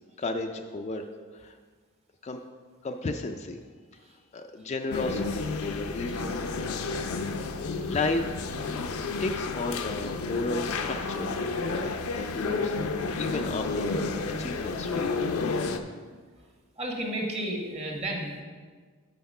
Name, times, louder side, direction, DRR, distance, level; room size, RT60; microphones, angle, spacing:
voice 1, 0.2-1.1 1.3-1.5 2.2-2.4 2.8-3.6 4.3-6.3 7.8-8.4 8.6-8.8 9.2-11.9 12.2-14.1 14.4-15.1, left 2 dB, 30° left, 5 dB, 0.3 m, -33 dB
sound 1, 4.9-15.8, left 4 dB, 80° left, 0.6 m, -31 dB
voice 2, 16.8-18.4, right 1 dB, 30° right, 0 dB, 1.3 m, -32 dB
6.7 x 5.8 x 5.4 m, 1.5 s
head